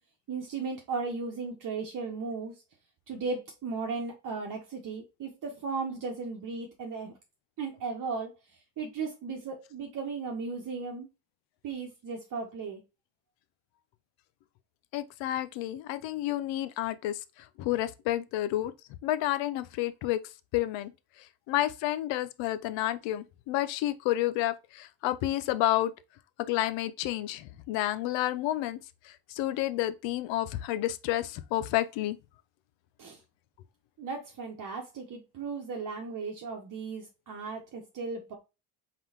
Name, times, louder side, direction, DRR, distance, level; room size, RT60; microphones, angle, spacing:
voice 1, 0.3-2.6 3.1-7.1 7.6-8.3 8.8-11.1 11.6-12.8 33.0-33.2 34.0-38.4, right 4 dB, 40° right, 1.1 m, -36 dB
voice 2, 14.9-17.2 17.6-18.7 19.0-20.2 20.5-20.9 21.5-25.9 26.5-28.8 29.3-32.2, left 14 dB, 70° left, 0.7 m, -30 dB
3.8 x 3.8 x 2.8 m
supercardioid pair, 90°, 47 cm